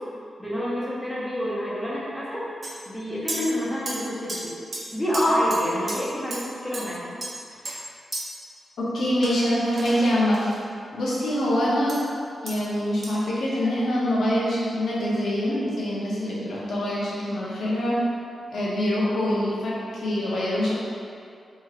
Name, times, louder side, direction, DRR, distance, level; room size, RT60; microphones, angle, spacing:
voice 1, 0.4-2.4 2.9-7.1, equal, 10° left, -8 dB, 0.8 m, -27 dB
sound 1, 2.6-2.7 3.3-3.4 3.9-4.0 4.3-4.4 4.7-4.8 5.1-5.2 5.5-5.6 5.9-6.0 6.3-6.4 6.7-6.8 7.2-7.8 8.1-8.2 9.2-10.6 11.9-12.0 12.5-12.6 13.0-13.1, right 2 dB, 50° right, 0.6 m, -33 dB
voice 2, 8.8-10.4 10.9-12.0 12.4-18.0 18.5-20.7, equal, 80° left, -6 dB, 0.7 m, -25 dB
3.0 x 2.8 x 2.4 m, 2.4 s
cardioid pair, 90°, 0 cm